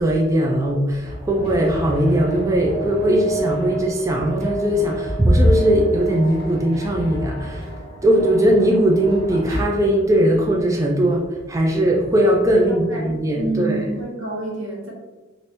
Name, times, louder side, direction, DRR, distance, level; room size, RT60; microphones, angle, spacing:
voice 1, 0.0-7.7 8.0-13.8, right 1 dB, 15° right, 0 dB, 0.4 m, -19 dB
sound 1, 1.0-9.6, right 2 dB, 30° right, 0.8 m, -31 dB
voice 2, 12.5-13.0 13.3-14.9, right 2 dB, 90° right, -3 dB, 1.1 m, -28 dB
2.9 x 2.6 x 3.2 m, 1.1 s
head